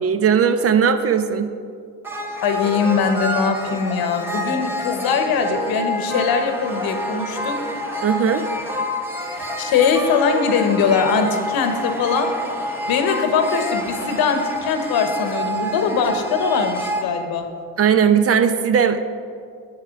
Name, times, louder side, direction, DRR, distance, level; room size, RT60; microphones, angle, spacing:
voice 1, 0.0-1.5 8.0-8.4 17.8-19.0, right 7 dB, 40° right, 10 dB, 0.7 m, -17 dB
sound 1, 2.0-17.0, equal, 5° right, 1.1 m, -27 dB
voice 2, 2.4-7.7 9.4-12.3 12.9-17.5, left 5 dB, 70° left, 6 dB, 1.1 m, -21 dB
7.4 x 6.5 x 5.8 m, 2.2 s
supercardioid pair, 80°, 37 cm